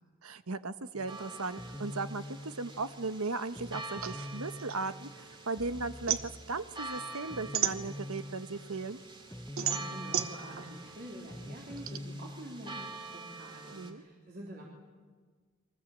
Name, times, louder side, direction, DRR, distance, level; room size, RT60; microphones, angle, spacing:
voice 1, 0.2-9.0 13.7-14.0, right 3 dB, 85° right, 11 dB, 1.1 m, -37 dB
sound 1, 0.9-13.1, left 1 dB, 10° left, 0.8 m, -46 dB
sound 2, 1.1-13.9, right 2 dB, 25° right, 2.6 m, -47 dB
sound 3, 4.0-5.5 5.8-8.4 8.8-12.0, right 10 dB, 65° right, 1.2 m, -35 dB
voice 2, 9.5-14.7, right 1 dB, 45° right, -2 dB, 3.9 m, -46 dB
29.5 x 23.5 x 7.4 m, 1.5 s
head